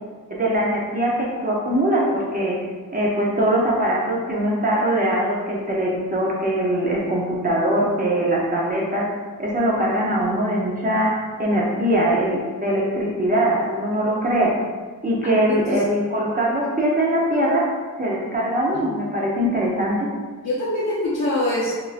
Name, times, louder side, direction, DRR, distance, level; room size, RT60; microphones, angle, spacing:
voice 1, 0.3-2.7 2.9-9.1 9.4-11.1 11.4-14.5 15.0-17.7 18.0-20.1, right 1 dB, 25° right, -4 dB, 0.7 m, -22 dB
voice 2, 15.5-15.8 18.7-18.8 20.4-21.7, left 1 dB, 45° left, -7 dB, 0.9 m, -24 dB
6.4 x 2.7 x 2.5 m, 1.5 s
wide cardioid pair, 160°, 37 cm